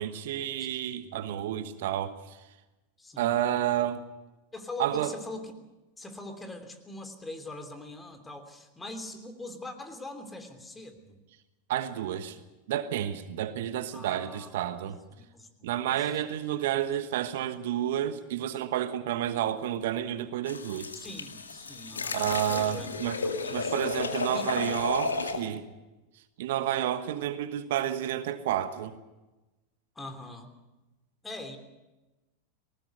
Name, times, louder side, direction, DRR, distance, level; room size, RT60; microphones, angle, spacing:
voice 1, 0.0-2.4 3.2-4.0 4.8-5.1 11.7-12.4 12.7-15.0 15.6-20.9 22.1-23.2 23.5-25.7 26.4-28.9, right 11 dB, 65° right, 11 dB, 1.3 m, -30 dB
voice 2, 3.0-3.3 4.5-5.5 6.0-11.2 13.9-14.8 15.1-16.3 20.9-22.9 23.4-23.7 24.3-24.5 29.9-30.5 31.2-31.6, left 2 dB, 15° left, 7 dB, 3.2 m, -42 dB
sound 1, 20.5-25.5, left 4 dB, 90° left, 2.0 m, -33 dB
19.5 x 19.0 x 8.0 m, 1.1 s
hypercardioid pair, 95°, 0 cm